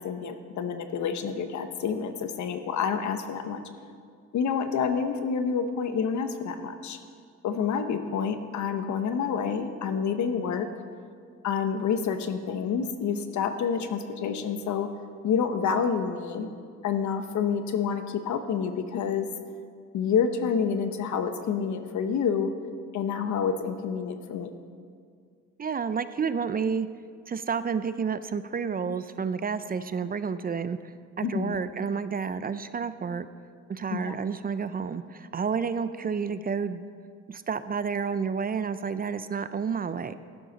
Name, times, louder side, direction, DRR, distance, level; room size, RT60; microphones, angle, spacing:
voice 1, 0.0-3.6 4.3-7.0 7.4-10.7 11.4-14.9 15.2-16.5 16.8-19.3 19.9-22.5 22.9-24.5 31.2-31.6 33.9-34.2, left 6 dB, 70° left, 8 dB, 1.0 m, -28 dB
voice 2, 25.6-26.9 27.3-33.3 33.7-36.9 37.3-40.1, right 6 dB, 30° right, 13 dB, 0.5 m, -30 dB
13.5 x 11.5 x 4.0 m, 2.1 s
cardioid pair, 90°, 30 cm